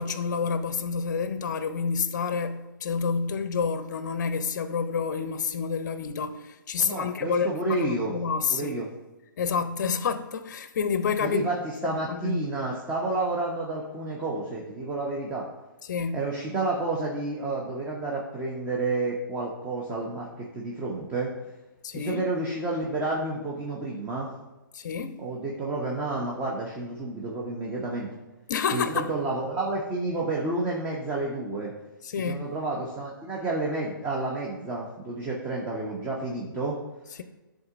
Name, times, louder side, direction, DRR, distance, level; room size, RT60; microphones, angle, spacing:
voice 1, 0.0-7.5 7.8-8.8 9.4-11.5 11.8-12.5 15.8-16.2 21.8-22.2 24.7-25.2 28.5-29.1 32.0-32.4, left 6 dB, 55° left, 0.5 m, -29 dB
voice 2, 6.8-8.1 8.5-8.9 11.2-15.5 16.1-21.3 21.9-24.3 25.2-28.1 28.7-31.7 32.2-36.8, right 2 dB, 15° right, 0.8 m, -30 dB
10.5 x 3.7 x 2.5 m
figure-of-eight pair, 125°, 11 cm